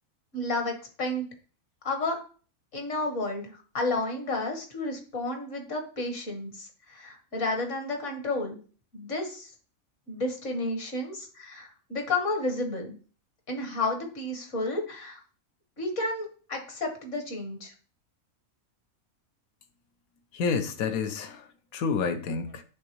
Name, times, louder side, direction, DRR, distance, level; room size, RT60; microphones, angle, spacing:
voice 1, 0.3-1.3 1.9-2.2 2.7-8.6 8.9-9.5 10.1-12.9 13.5-15.2 15.8-17.7, left 2 dB, 60° left, 1.7 m, -31 dB
voice 2, 20.3-21.4 21.7-22.6, left 5 dB, 90° left, 1.2 m, -29 dB
8.5 x 3.6 x 3.0 m
omnidirectional pair, 1.4 m